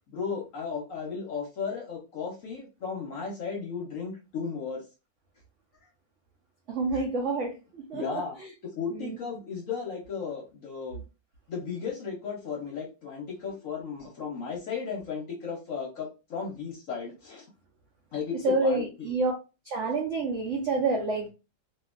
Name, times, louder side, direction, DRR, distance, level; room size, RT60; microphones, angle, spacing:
voice 1, 0.1-4.8 6.9-7.0 7.9-8.3 8.8-11.0 11.5-17.5 18.1-19.2, left 5 dB, 60° left, 0.9 m, -35 dB
voice 2, 6.7-8.5 8.9-9.2 18.4-19.3 19.6-21.3, right 3 dB, 90° right, 0.6 m, -28 dB
2.8 x 2.5 x 2.4 m
omnidirectional pair, 2.1 m